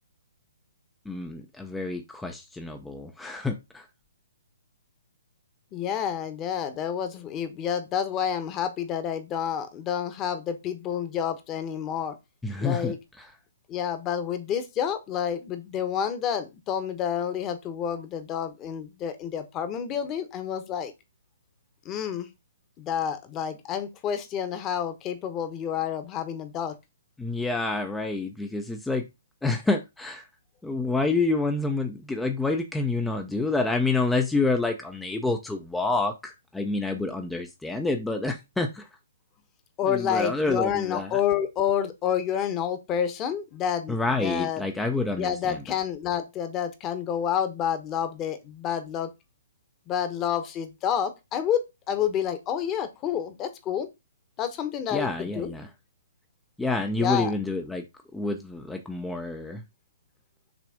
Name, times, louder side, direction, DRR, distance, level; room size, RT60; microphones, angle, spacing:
voice 1, 1.0-3.9 12.4-13.3 27.2-29.1 29.4-30.3 30.6-38.9 39.8-41.2 43.9-45.6 54.9-55.7 56.6-57.8 58.1-59.6, left 3 dB, 5° left, 0.7 m, -28 dB
voice 2, 5.7-12.2 12.6-13.0 13.7-20.9 21.8-22.3 22.8-26.7 39.8-44.6 45.2-49.1 49.9-53.9 54.4-55.5 57.0-57.3, left 8 dB, 20° left, 1.2 m, -29 dB
6.1 x 3.4 x 5.0 m
hypercardioid pair, 145°, 0 cm